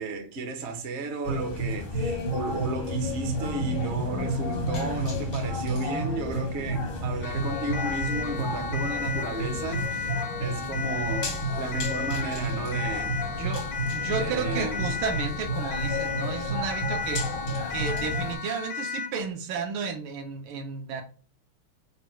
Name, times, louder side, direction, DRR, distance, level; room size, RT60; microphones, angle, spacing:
voice 1, 0.0-10.1 10.4-13.1 14.1-14.9, right 3 dB, 60° right, 0.7 m, -34 dB
sound 1, 1.2-18.3, equal, 55° left, 0.6 m, -31 dB
Siren, 7.2-19.2, left 6 dB, 80° left, 1.4 m, -34 dB
voice 2, 13.9-17.3 17.7-21.0, right 5 dB, 80° right, 1.5 m, -32 dB
4.2 x 2.3 x 4.3 m
omnidirectional pair, 2.4 m